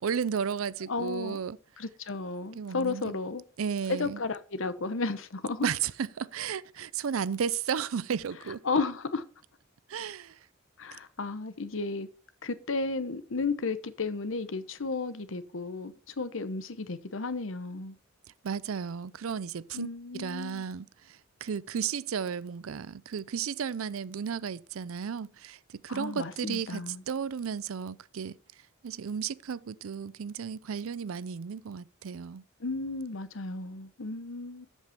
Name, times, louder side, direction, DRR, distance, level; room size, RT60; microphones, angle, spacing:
voice 1, 0.0-1.6 2.5-3.1 3.6-4.2 5.6-8.6 9.9-10.4 18.4-28.4 28.8-32.4, right 7 dB, 80° right, 0.5 m, -34 dB
voice 2, 0.9-1.4 1.8-3.4 3.9-5.6 8.6-9.2 10.8-12.1 12.4-17.9 19.7-20.6 25.9-27.0 32.6-34.7, left 3 dB, 65° left, 0.9 m, -33 dB
13.5 x 5.5 x 4.4 m
head